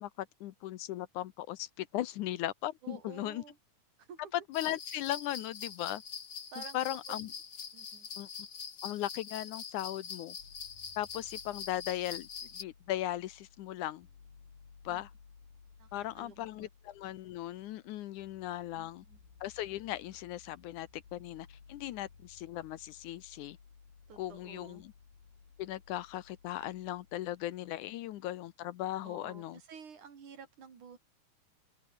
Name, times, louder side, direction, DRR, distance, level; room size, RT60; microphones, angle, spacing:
voice 1, 0.0-3.4 4.3-6.0 6.6-7.3 8.2-8.3 8.8-10.4 11.0-12.3 12.5-14.1 14.9-15.1 15.9-19.0 19.4-23.6 24.2-24.9 25.6-29.6, left 14 dB, 75° left, 2.2 m, -38 dB
voice 2, 2.8-3.6 4.0-4.2 6.5-7.3 7.7-8.1 14.9-15.0 15.8-16.7 18.7-19.2 24.1-24.8 29.0-31.0, right 6 dB, 65° right, 5.0 m, -51 dB
sound 1, 4.5-12.6, left 6 dB, 40° left, 2.3 m, -44 dB
sound 2, 10.4-28.3, left 5 dB, 90° left, 6.3 m, -59 dB
open air
omnidirectional pair, 3.8 m